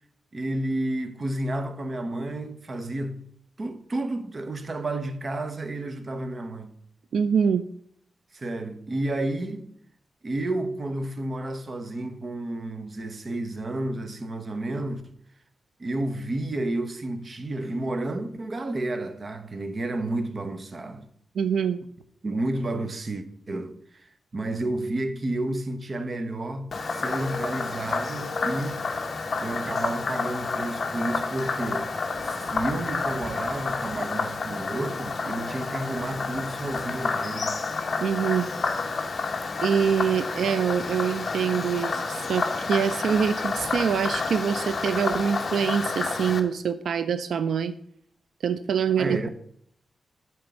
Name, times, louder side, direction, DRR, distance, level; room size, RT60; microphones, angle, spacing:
voice 1, 0.3-3.3 3.6-6.7 8.3-9.7 10.2-15.1 15.8-21.1 22.2-28.8 29.4-31.9 32.2-37.6 49.0-49.3, right 1 dB, 35° right, 0.8 m, -31 dB
voice 2, 7.1-7.7 21.4-21.8 38.0-38.5 39.6-47.7 48.4-49.3, right 7 dB, 80° right, 0.4 m, -25 dB
Frog, 26.7-46.4, left 4 dB, 45° left, 0.8 m, -30 dB
7.6 x 4.4 x 7.0 m
wide cardioid pair, 130°, 0 cm